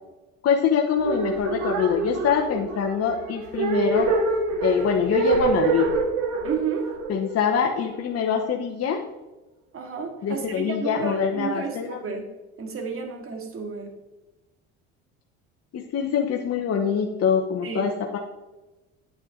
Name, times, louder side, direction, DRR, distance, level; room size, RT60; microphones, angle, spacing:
voice 1, 0.4-4.1 4.6-5.9 7.1-9.0 10.2-12.0 15.7-18.2, left 7 dB, 45° left, 1 dB, 1.1 m, -24 dB
sound 1, 1.0-8.1, right 4 dB, 60° right, 2.0 m, -26 dB
voice 2, 6.4-6.9 9.7-12.2 12.6-13.9 17.6-17.9, right 6 dB, 40° right, 4 dB, 2.3 m, -31 dB
9.0 x 8.8 x 3.9 m, 1.1 s
supercardioid pair, 80°, 33 cm